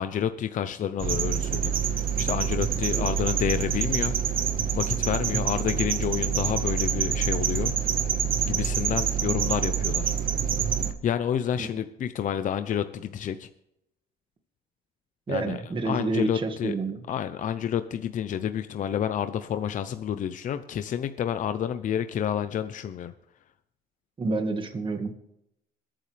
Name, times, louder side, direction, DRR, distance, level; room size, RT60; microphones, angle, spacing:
voice 1, 0.0-4.4 4.7-8.0 8.4-10.0 11.0-13.5 15.3-16.7 17.1-23.1, left 9 dB, 50° left, 10 dB, 0.8 m, -29 dB
sound 1, 1.0-10.9, right 8 dB, 55° right, 1.5 m, -26 dB
voice 2, 15.3-17.0 24.2-25.1, right 3 dB, 30° right, 5 dB, 2.0 m, -29 dB
22.0 x 9.0 x 3.4 m, 0.80 s
cardioid pair, 110°, 17 cm